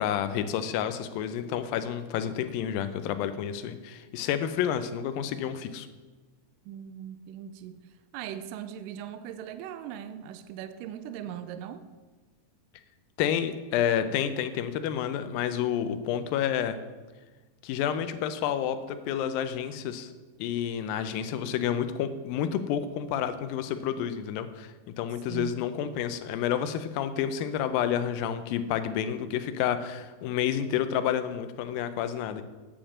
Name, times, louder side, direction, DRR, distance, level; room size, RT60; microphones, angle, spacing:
voice 1, 0.0-5.9 13.2-16.8 17.6-20.1 20.4-32.4, left 9 dB, 85° left, 11 dB, 2.4 m, -29 dB
voice 2, 6.7-11.8 25.2-25.6, right 10 dB, 80° right, 11 dB, 2.1 m, -40 dB
8.9 x 5.1 x 7.2 m, 1.3 s
omnidirectional pair, 4.0 m